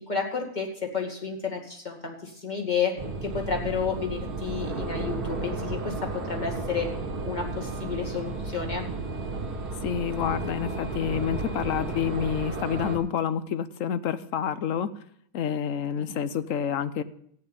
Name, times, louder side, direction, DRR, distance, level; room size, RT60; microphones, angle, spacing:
voice 1, 0.1-0.7 0.9-3.0 3.2-6.9 7.2-8.9, left 6 dB, 30° left, 0 dB, 2.3 m, -31 dB
sound 1, 3.0-13.0, right 3 dB, 85° right, 2.2 m, -33 dB
voice 2, 9.8-14.9 15.3-17.0, left 8 dB, 65° left, 13 dB, 1.1 m, -28 dB
14.0 x 9.4 x 5.5 m, 0.66 s
omnidirectional pair, 1.6 m